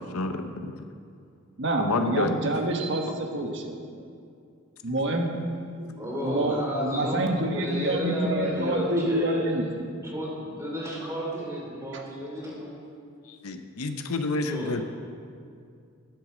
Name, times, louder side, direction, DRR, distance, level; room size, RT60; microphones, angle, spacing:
voice 1, 0.1-0.7 1.8-2.4 13.4-14.8, left 3 dB, 90° left, 7 dB, 0.7 m, -29 dB
voice 2, 1.6-3.8 4.8-9.6, right 1 dB, 55° right, 2 dB, 1.3 m, -27 dB
voice 3, 5.9-9.5 10.0-12.7 14.4-14.8, equal, 15° right, -4 dB, 3.1 m, -32 dB
12.0 x 8.1 x 6.1 m, 2.3 s
head